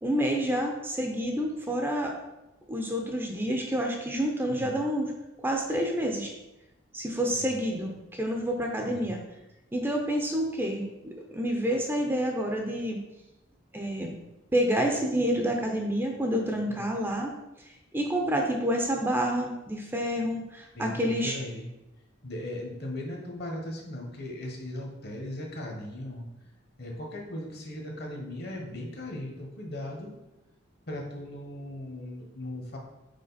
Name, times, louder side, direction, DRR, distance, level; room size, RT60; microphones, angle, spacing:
voice 1, 0.0-2.1 2.7-5.1 5.4-6.3 6.9-9.2 9.7-13.0 13.7-14.2 14.5-17.3 17.9-21.4, equal, 10° right, 1 dB, 0.6 m, -28 dB
voice 2, 4.5-4.8 7.3-7.5 8.8-9.1 16.7-16.9 20.7-21.7 22.2-26.2 26.8-30.1 30.9-32.8, left 1 dB, 55° left, 1 dB, 1.3 m, -38 dB
5.0 x 4.8 x 4.1 m, 0.96 s
head